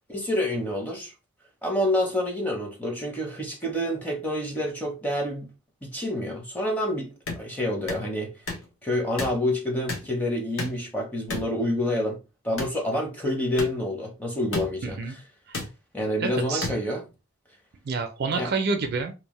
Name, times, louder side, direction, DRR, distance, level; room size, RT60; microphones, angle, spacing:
voice 1, 0.1-1.1 1.6-5.5 5.8-7.1 7.4-8.3 8.8-12.2 12.4-15.2 15.9-17.1 18.3-18.5, left 1 dB, 10° left, 0.6 m, -28 dB
sound 1, 7.3-7.4 7.9-8.0 8.5-8.7 9.2-9.4 9.9-10.1 10.6-10.8 11.3-11.5 12.6-12.8 13.6-13.7 14.5-14.7 15.5-15.7 16.6-16.7, left 3 dB, 65° left, 0.9 m, -31 dB
voice 2, 14.8-15.2 15.5-15.6 16.2-16.7 17.9-19.1, right 4 dB, 45° right, 0.4 m, -28 dB
2.6 x 2.0 x 3.0 m
head